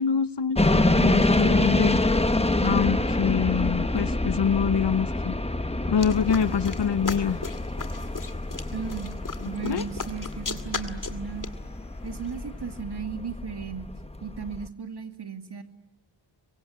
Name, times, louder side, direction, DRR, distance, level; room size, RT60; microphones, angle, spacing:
voice 1, 0.0-2.0 2.6-5.4 5.9-7.4 9.4-9.8, left 7 dB, 65° left, 15 dB, 1.0 m, -25 dB
sound 1, 0.6-14.7, left 2 dB, 15° left, 1.4 m, -26 dB
sound 2, 6.0-12.8, left 4 dB, 45° left, 2.2 m, -38 dB
voice 2, 8.7-9.2 9.4-11.5 12.0-13.9 14.2-15.6, right 6 dB, 60° right, 7 dB, 2.6 m, -35 dB
26.5 x 23.5 x 9.6 m, 0.94 s
cardioid pair, 60°, 45 cm